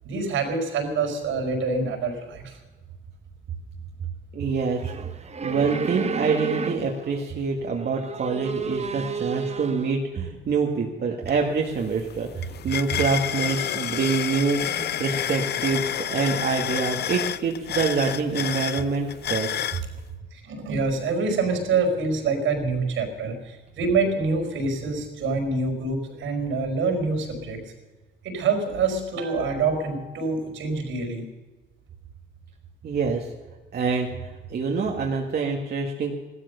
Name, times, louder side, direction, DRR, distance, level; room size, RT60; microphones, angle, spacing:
voice 1, 0.0-2.6 20.3-27.6 28.2-31.2, right 4 dB, 80° right, 4 dB, 5.1 m, -26 dB
voice 2, 4.3-4.9 5.4-19.6 32.8-33.3 33.7-36.2, right 4 dB, 55° right, 0 dB, 1.8 m, -26 dB
sound 1, 4.7-7.2 7.7-10.0, right 5 dB, 35° right, 1.2 m, -32 dB
sound 2, 11.3-11.4 11.7-19.8, left 10 dB, 55° left, 0.6 m, -29 dB
16.0 x 12.5 x 6.8 m, 1.2 s
cardioid pair, 90°, 20 cm